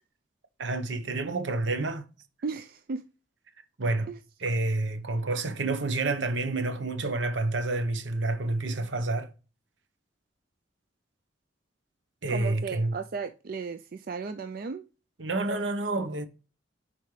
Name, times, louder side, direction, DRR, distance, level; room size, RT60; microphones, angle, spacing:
voice 1, 0.6-2.1 3.8-4.1 4.4-9.3 12.2-12.9 15.2-16.3, right 2 dB, 75° right, 1.0 m, -29 dB
voice 2, 2.4-3.1 4.1-4.2 12.3-14.8, right 4 dB, 50° right, 0.4 m, -35 dB
10.5 x 4.3 x 3.2 m
head